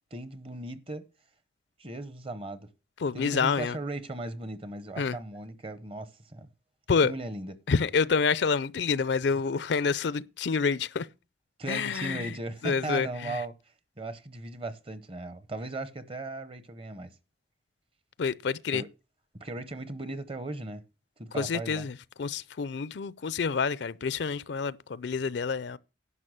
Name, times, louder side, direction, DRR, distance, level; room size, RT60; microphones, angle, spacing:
voice 1, 0.1-1.0 1.8-2.7 3.1-6.5 7.0-7.6 11.6-13.5 14.0-17.1 18.7-18.9 19.3-20.8 21.2-21.9, right 2 dB, 30° right, 0.8 m, -37 dB
voice 2, 3.0-3.8 5.0-5.2 6.9-7.1 7.7-11.1 11.7-12.3 12.6-13.4 18.2-18.8 21.3-25.8, left 5 dB, 65° left, 0.5 m, -28 dB
11.0 x 5.9 x 6.3 m
head